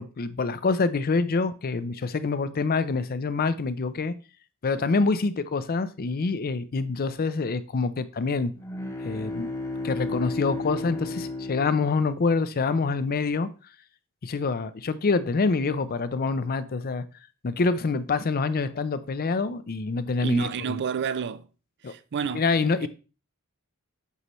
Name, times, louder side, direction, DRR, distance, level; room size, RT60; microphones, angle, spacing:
voice 1, 0.0-4.1 4.6-8.5 9.0-9.5 9.8-13.5 14.2-17.0 17.4-20.5 21.8-21.9 22.3-22.9, left 4 dB, 45° left, 0.5 m, -26 dB
sound 1, 8.5-12.6, left 2 dB, 15° left, 1.0 m, -34 dB
voice 2, 20.2-21.5 21.8-22.5 22.8-22.9, right 6 dB, 50° right, 0.4 m, -30 dB
8.2 x 5.6 x 3.0 m
head